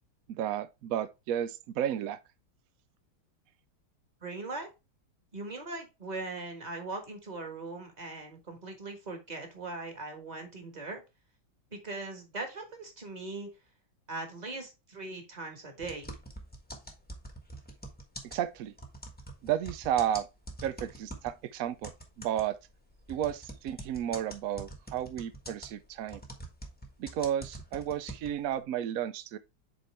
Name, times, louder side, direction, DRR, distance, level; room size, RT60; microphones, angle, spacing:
voice 1, 0.3-2.2 18.2-18.7 19.4-20.3 20.6-21.9 22.2-22.6 23.1-26.2 27.0-29.4, right 10 dB, 70° right, 0.8 m, -32 dB
voice 2, 4.2-4.7 5.3-11.0 11.7-13.5 14.1-16.1, right 3 dB, 25° right, 1.5 m, -40 dB
sound 1, 15.8-21.4 21.8-28.5, right 1 dB, 5° left, 1.0 m, -44 dB
7.7 x 4.3 x 3.3 m
omnidirectional pair, 2.1 m